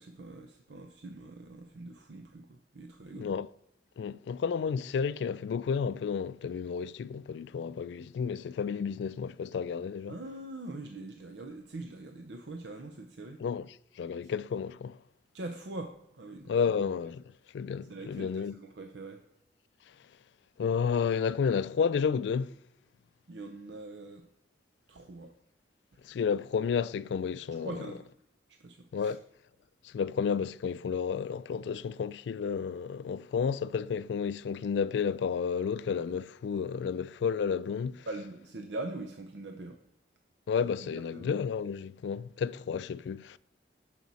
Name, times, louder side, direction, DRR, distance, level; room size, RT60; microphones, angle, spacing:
voice 1, 0.0-3.3 10.1-13.4 15.3-16.5 17.9-19.2 23.3-24.3 24.9-25.3 27.6-28.0 28.6-29.1 38.1-39.8 40.8-41.3, right 2 dB, 85° right, 0.7 m, -43 dB
voice 2, 3.2-3.5 4.0-10.2 13.4-13.7 14.0-15.0 16.5-17.2 17.5-18.5 20.6-22.5 26.0-27.7 28.9-29.2 29.8-38.1 40.5-43.4, left 6 dB, 80° left, 0.3 m, -31 dB
10.5 x 5.9 x 4.1 m
head